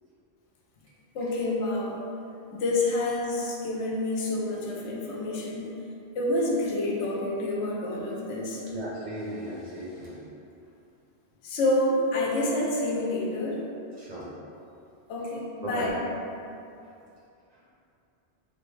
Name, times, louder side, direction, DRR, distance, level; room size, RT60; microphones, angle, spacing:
voice 1, 1.1-2.0 2.5-5.7 6.2-8.6 11.4-13.7 15.1-15.9, left 1 dB, 90° left, -2 dB, 0.9 m, -28 dB
voice 2, 8.6-10.2 14.0-14.3 15.6-15.9 17.5-17.6, right 1 dB, 50° right, -8 dB, 0.5 m, -36 dB
3.4 x 2.1 x 3.1 m, 2.6 s
omnidirectional pair, 1.2 m